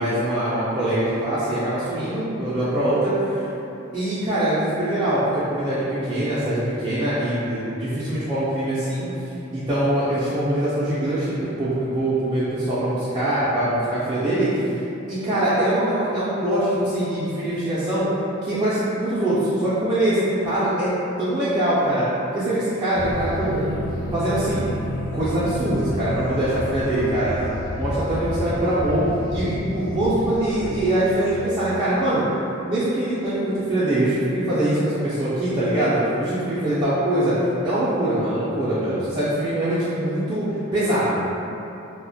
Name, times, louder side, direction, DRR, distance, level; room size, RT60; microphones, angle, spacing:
voice 1, 0.0-3.4 3.9-9.1 9.5-14.5 15.1-18.1 18.4-20.9 21.2-22.1 22.3-23.8 24.1-24.7 25.1-27.3 27.8-29.0 29.3-32.2 32.7-41.2, right 1 dB, 25° right, -12 dB, 0.3 m, -23 dB
sound 1, 22.9-31.5, equal, 45° left, 0.4 m, -30 dB
2.3 x 2.1 x 2.6 m, 2.9 s
head